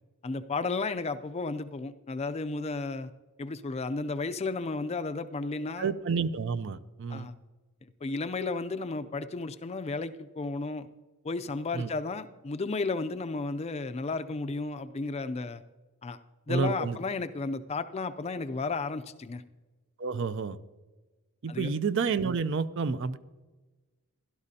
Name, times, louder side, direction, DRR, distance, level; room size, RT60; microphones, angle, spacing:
voice 1, 0.2-3.1 3.4-5.9 7.1-7.4 8.0-10.9 11.2-15.6 16.0-16.2 16.5-19.4 21.5-21.7, left 3 dB, 30° left, 11 dB, 0.4 m, -33 dB
voice 2, 5.8-7.3 11.7-11.9 16.5-17.0 20.0-20.6 21.4-23.2, right 5 dB, 60° right, 13 dB, 0.5 m, -29 dB
16.5 x 12.0 x 2.8 m, 1.2 s
head